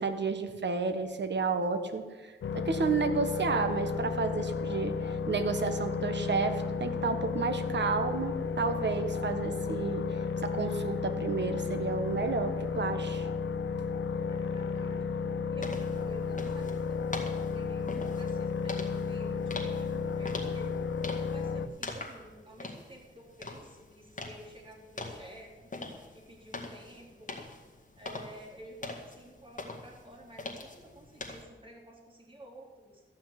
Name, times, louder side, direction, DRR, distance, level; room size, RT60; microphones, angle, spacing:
voice 1, 0.0-13.3, right 4 dB, 60° right, 7 dB, 1.4 m, -31 dB
sound 1, 2.4-21.7, left 5 dB, 75° left, 0.6 m, -33 dB
voice 2, 14.3-15.0 15.5-20.7 21.2-25.7 26.1-27.4 28.0-33.0, right 1 dB, 25° right, -1 dB, 3.6 m, -51 dB
sound 2, 15.6-31.4, left 3 dB, 40° left, 2.0 m, -43 dB
14.0 x 5.8 x 9.7 m, 1.3 s
wide cardioid pair, 90°, 20 cm